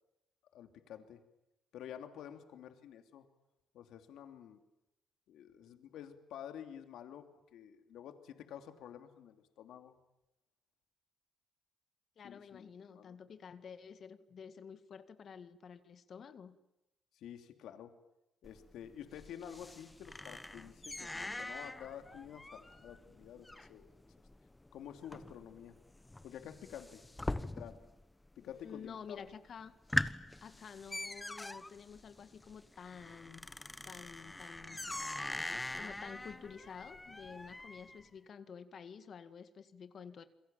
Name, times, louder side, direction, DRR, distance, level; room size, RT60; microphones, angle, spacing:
voice 1, 0.5-1.2 1.7-3.2 3.7-4.6 5.3-10.0 12.2-13.2 17.1-17.9 18.4-23.9 24.7-25.7 26.2-27.0 27.5-27.8 28.4-29.2, left 9 dB, 80° left, 7 dB, 2.9 m, -50 dB
voice 2, 12.2-16.6 28.4-29.7 30.4-33.5 33.8-34.8 35.7-40.2, left 6 dB, 55° left, 10 dB, 1.9 m, -50 dB
sound 1, 18.4-28.0 28.3-28.9 29.3-29.4 29.7-38.0, left 2 dB, 15° left, 1.2 m, -42 dB
28.5 x 22.0 x 9.1 m, 0.90 s
cardioid pair, 90°, 0 cm